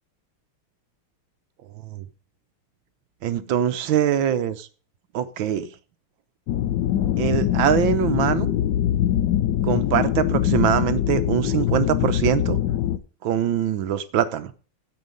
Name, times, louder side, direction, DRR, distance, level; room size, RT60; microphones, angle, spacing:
voice 1, 3.2-4.7 5.1-5.7 7.2-8.5 9.6-12.6 13.2-14.5, right 9 dB, 70° right, 12 dB, 1.5 m, -23 dB
sound 1, 6.5-13.0, left 11 dB, 65° left, 1.2 m, -23 dB
15.5 x 5.6 x 5.3 m, 0.37 s
omnidirectional pair, 2.4 m